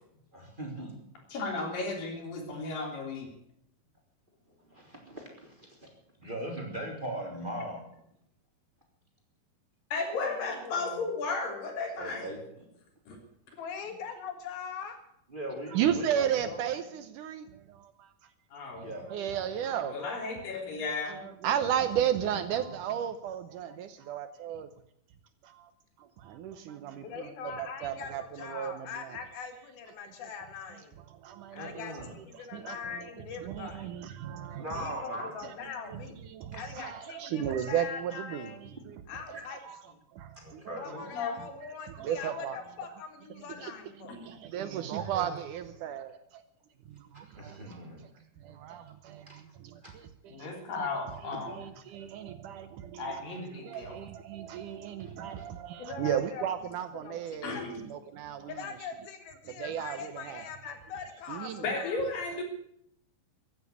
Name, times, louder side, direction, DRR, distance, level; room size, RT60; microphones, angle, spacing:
voice 1, 0.3-0.9 4.7-5.9 6.2-7.8 11.9-12.4 15.3-16.7 18.8-19.1 31.5-32.2 34.5-35.3 40.3-41.0 47.3-48.0 49.3-49.4 49.8-49.9 55.0-55.4, right 1 dB, 15° right, 0 dB, 3.4 m, -39 dB
voice 2, 1.3-3.3 9.9-12.3 13.1-13.2 18.5-18.9 19.9-21.2 40.9-41.3 44.1-44.4 50.3-51.6 53.0-53.9 57.4-57.7 61.6-62.4, left 3 dB, 70° left, 2 dB, 5.0 m, -34 dB
voice 3, 10.1-11.1 13.6-15.0 27.0-31.0 31.5-33.9 34.7-36.2 36.6-38.6 39.1-39.6 39.9-40.0 40.8-44.1 55.8-56.4 57.0-57.8 58.5-62.0, left 6 dB, 90° left, 6 dB, 3.8 m, -42 dB
voice 4, 15.7-18.3 18.8-20.5 20.7-24.7 25.4-25.7 26.0-29.2 31.2-31.7 32.3-34.9 35.4-39.0 39.3-39.4 39.6-39.8 40.1-41.2 41.6-42.6 43.4-43.7 44.0-46.4 46.9-47.9 48.4-50.5 50.8-50.9 51.2-57.5 57.9-58.6 59.5-60.4 61.3-61.7, right 9 dB, 70° right, 11 dB, 2.1 m, -35 dB
15.5 x 9.5 x 9.6 m, 0.73 s
omnidirectional pair, 4.2 m